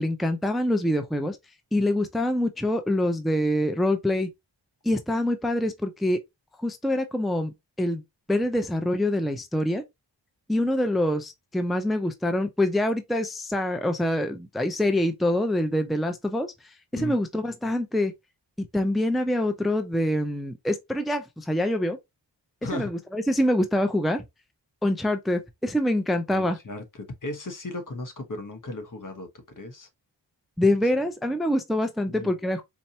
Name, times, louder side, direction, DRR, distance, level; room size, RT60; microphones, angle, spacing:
voice 1, 0.0-1.4 1.7-4.3 4.8-6.2 6.6-8.0 8.3-9.8 10.5-16.5 16.9-18.1 18.6-22.0 22.7-24.2 24.8-26.6 30.6-32.6, left 1 dB, ahead, 0.6 m, -25 dB
voice 2, 22.6-22.9 26.3-29.9 32.1-32.3, left 2 dB, 45° left, 1.2 m, -36 dB
4.4 x 2.9 x 2.8 m
cardioid pair, 55°, 44 cm